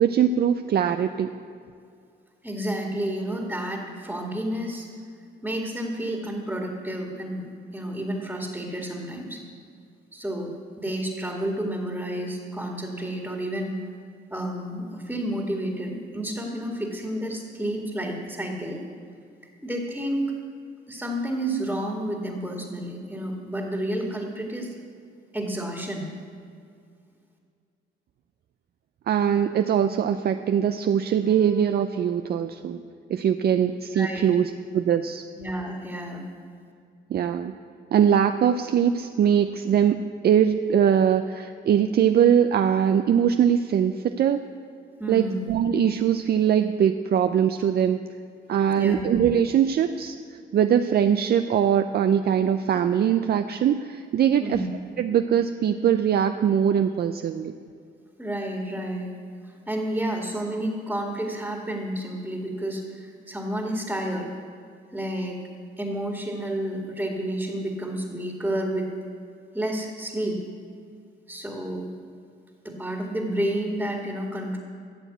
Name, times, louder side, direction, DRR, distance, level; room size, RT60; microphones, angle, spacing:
voice 1, 0.0-1.3 29.1-32.8 33.1-35.2 37.1-37.5 37.9-40.0 40.2-44.4 45.1-48.0 48.5-50.2 50.5-54.6 55.0-57.5, right 8 dB, 55° right, 8 dB, 0.5 m, -22 dB
voice 2, 2.4-4.9 5.4-7.4 7.7-9.4 10.1-13.7 14.3-18.8 19.6-20.2 20.9-24.7 25.3-26.1 33.9-34.3 35.4-36.2 45.0-45.5 48.8-49.0 54.4-54.7 58.2-59.1 59.4-64.3 64.9-65.4 65.8-68.9 69.5-70.4 71.3-71.9 72.6-74.6, right 1 dB, 5° right, 0 dB, 2.0 m, -30 dB
14.5 x 7.1 x 8.1 m, 2.3 s
cardioid pair, 90°, 20 cm